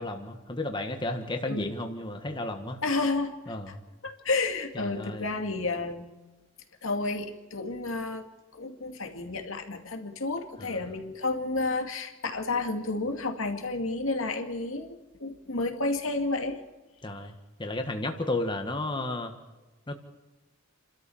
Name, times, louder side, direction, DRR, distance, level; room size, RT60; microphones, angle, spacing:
voice 1, 0.0-2.8 3.5-3.8 4.7-5.3 10.6-10.8 17.0-17.3 17.6-19.3 19.9-20.0, left 2 dB, 25° left, 5 dB, 1.5 m, -33 dB
voice 2, 2.8-3.3 3.7-3.8 4.0-6.0 6.8-8.2 8.5-16.6, left 3 dB, 75° left, 4 dB, 2.4 m, -31 dB
28.5 x 13.0 x 7.1 m, 1.2 s
head